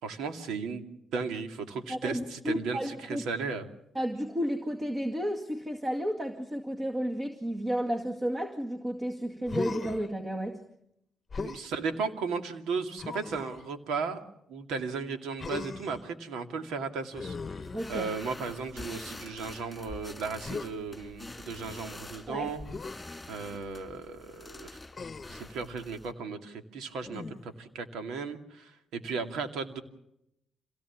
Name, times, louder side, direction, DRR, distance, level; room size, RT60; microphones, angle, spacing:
voice 1, 0.0-0.9 1.1-3.7 11.4-14.2 14.5-17.4 17.9-22.6 23.3-24.7 25.3-29.8, right 5 dB, 85° right, 7 dB, 2.3 m, -35 dB
voice 2, 1.9-3.2 3.9-10.6 17.7-18.1 22.3-22.5, equal, 25° right, 5 dB, 2.1 m, -32 dB
Human voice, 9.5-10.1 11.3-11.7 13.0-13.7 15.4-16.0 17.1-18.4 20.4-20.7 22.7-23.0 24.9-25.5 27.0-27.6, left 4 dB, 30° left, 1.1 m, -38 dB
sound 1, 17.6-26.1, left 2 dB, 15° left, 3.0 m, -46 dB
26.0 x 18.0 x 7.2 m, 0.80 s
cardioid pair, 90°, 0 cm